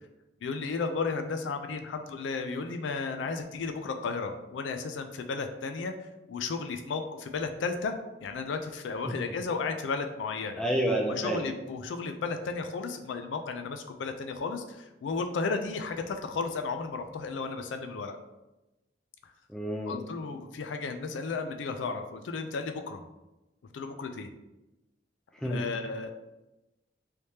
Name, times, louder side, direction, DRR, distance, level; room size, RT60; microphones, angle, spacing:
voice 1, 0.4-7.9 8.2-10.6 11.1-18.2 19.2-19.3 19.9-23.0 23.7-24.3 25.4-26.1, left 4 dB, 90° left, 6 dB, 0.4 m, -34 dB
voice 2, 10.6-11.4 19.5-20.0 25.4-25.6, right 1 dB, 5° left, 0 dB, 0.3 m, -29 dB
3.3 x 3.2 x 2.8 m, 1.0 s
head